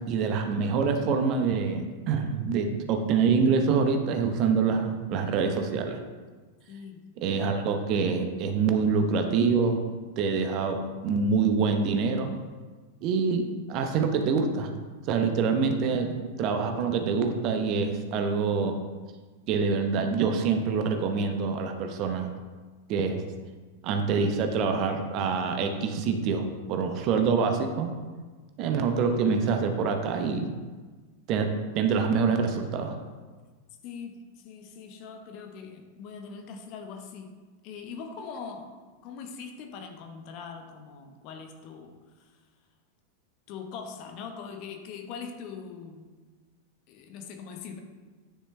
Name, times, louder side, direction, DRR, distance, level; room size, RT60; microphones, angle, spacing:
voice 1, 0.1-6.0 7.2-9.8 10.2-12.3 13.0-14.7 15.1-18.8 19.5-22.3 22.9-23.2 23.8-27.9 28.6-30.5 31.3-33.0, right 5 dB, 40° right, 6 dB, 0.9 m, -26 dB
voice 2, 6.7-7.0 33.8-37.3 37.6-38.7 39.0-42.3 43.5-46.0 46.9-47.8, left 6 dB, 40° left, 4 dB, 1.1 m, -42 dB
9.8 x 6.6 x 3.3 m, 1.4 s
figure-of-eight pair, 90°, 0 cm